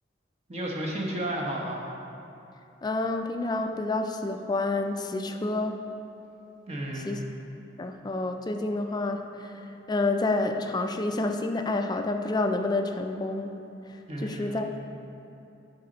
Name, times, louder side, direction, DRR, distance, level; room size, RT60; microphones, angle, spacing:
voice 1, 0.5-1.8 6.7-7.2 14.1-14.7, right 1 dB, 35° right, -2 dB, 1.1 m, -32 dB
voice 2, 2.8-5.8 7.1-7.2 7.8-9.5 9.9-13.6 14.2-14.8, left 2 dB, 25° left, 6 dB, 0.4 m, -28 dB
11.0 x 4.2 x 3.9 m, 2.8 s
head